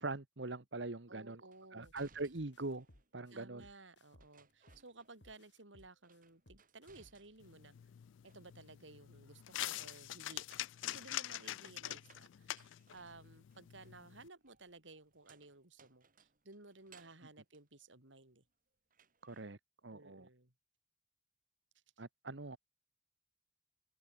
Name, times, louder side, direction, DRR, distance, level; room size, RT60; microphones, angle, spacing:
voice 1, 0.0-1.4 1.7-2.9 3.1-3.6 19.2-19.6 19.8-20.3 22.0-22.6, right 2 dB, 70° right, 1.5 m, -42 dB
voice 2, 1.1-1.9 3.3-7.8 8.2-10.4 10.8-18.4 19.9-20.5, right 2 dB, 85° right, 4.9 m, -57 dB
sound 1, 1.5-3.1 4.2-5.5 5.8-7.7 8.0-8.8 10.2-18.5 18.9-19.5, right 5 dB, 45° right, 4.1 m, -69 dB
sound 2, 1.8-2.0 2.3-4.9 5.2-7.4, left 1 dB, 70° left, 6.3 m, -64 dB
sound 3, 7.4-14.3, left 14 dB, 90° left, 0.4 m, -45 dB
open air
head